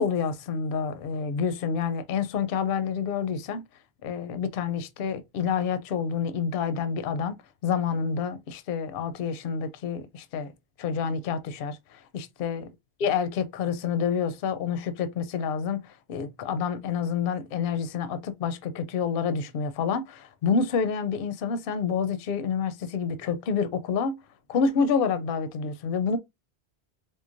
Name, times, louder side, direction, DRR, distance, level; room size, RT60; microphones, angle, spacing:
voice 1, 0.0-3.6 4.0-7.4 7.6-10.5 10.8-12.7 13.0-24.2 24.5-26.2, left 6 dB, 65° left, 0.7 m, -28 dB
4.5 x 2.2 x 2.5 m
omnidirectional pair, 1.1 m